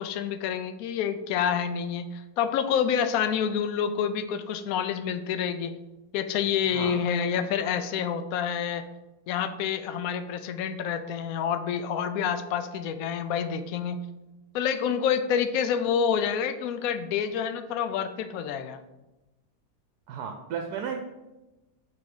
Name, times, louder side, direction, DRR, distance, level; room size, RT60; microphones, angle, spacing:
voice 1, 0.0-5.7 6.1-8.9 9.3-14.0 14.5-18.8, left 7 dB, 70° left, 10 dB, 0.9 m, -28 dB
voice 2, 6.6-7.0 20.1-21.0, right 7 dB, 80° right, 3 dB, 1.1 m, -34 dB
6.0 x 3.2 x 5.2 m, 1.0 s
omnidirectional pair, 1.7 m